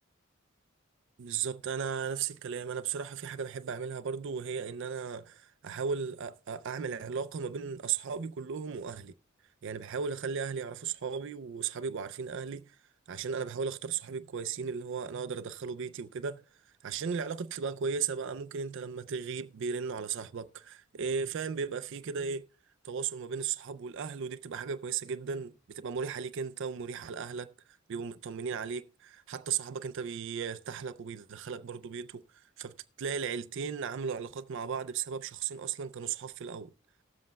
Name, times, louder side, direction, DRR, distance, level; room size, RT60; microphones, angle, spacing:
voice 1, 1.2-9.1 9.6-12.7 13.1-16.4 16.8-22.4 22.8-27.5 27.9-32.2 32.6-36.7, right 6 dB, 65° right, 0.4 m, -36 dB
18.0 x 7.4 x 2.2 m
head